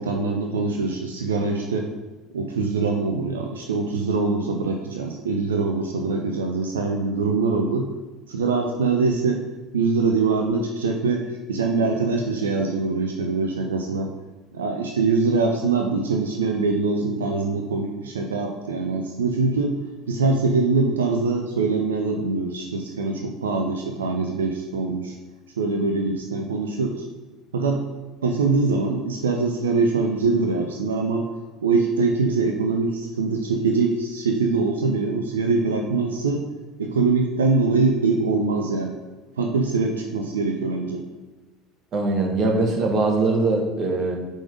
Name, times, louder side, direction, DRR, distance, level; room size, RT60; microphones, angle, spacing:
voice 1, 0.0-1.9 2.3-7.9 8.3-9.4 9.7-11.2 11.5-14.1 14.5-19.7 20.1-25.1 25.6-27.0 27.5-27.8 28.2-31.3 31.6-36.4 36.8-38.9 39.4-41.0, right 4 dB, 90° right, 2 dB, 0.5 m, -23 dB
voice 2, 41.9-44.2, right 3 dB, 50° right, 1 dB, 1.4 m, -22 dB
4.9 x 3.8 x 5.1 m, 1.2 s
hypercardioid pair, 75°, 0 cm